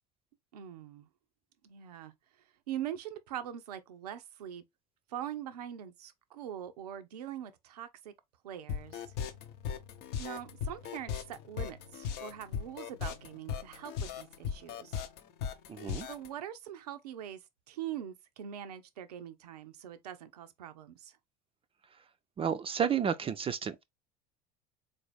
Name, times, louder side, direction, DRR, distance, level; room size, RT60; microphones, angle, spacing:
voice 1, 0.5-1.1 1.6-2.1 2.7-4.6 5.1-8.1 8.4-9.0 10.2-15.0 16.1-17.4 17.7-21.2, right 10 dB, 85° right, 0.5 m, -42 dB
sound 1, 8.7-16.3, left 8 dB, 60° left, 0.7 m, -37 dB
voice 2, 15.7-16.1 22.4-23.8, right 8 dB, 30° right, 0.4 m, -31 dB
3.9 x 2.6 x 3.2 m
hypercardioid pair, 70°, 20 cm